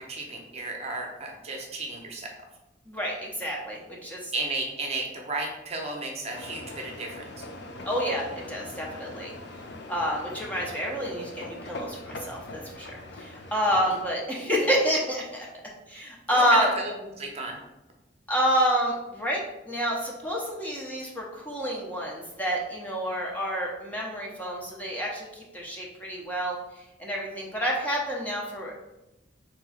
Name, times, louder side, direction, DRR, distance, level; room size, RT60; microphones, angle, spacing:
voice 1, 0.0-2.3 4.3-7.4 16.3-17.6, right 2 dB, 35° right, 1 dB, 0.7 m, -33 dB
voice 2, 2.9-4.3 7.8-9.3 9.9-12.9 13.2-15.5 15.9-16.7 18.3-26.6 27.0-28.7, equal, 10° left, -3 dB, 0.7 m, -28 dB
sound 1, 6.3-14.1, left 2 dB, 65° left, 0.6 m, -42 dB
3.6 x 3.0 x 4.8 m, 0.96 s
head